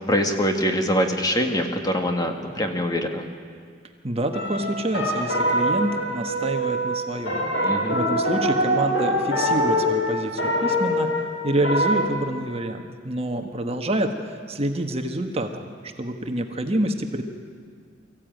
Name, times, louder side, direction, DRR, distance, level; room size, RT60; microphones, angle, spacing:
voice 1, 0.1-3.2 7.6-8.0, equal, 20° left, 4 dB, 1.6 m, -24 dB
voice 2, 4.0-7.4 7.9-11.1 11.4-14.2 14.5-15.7 16.0-17.2, right 1 dB, 35° right, 5 dB, 1.2 m, -27 dB
sound 1, 4.3-12.0, equal, 90° left, 4.7 m, -24 dB
23.5 x 15.0 x 9.1 m, 2.1 s
head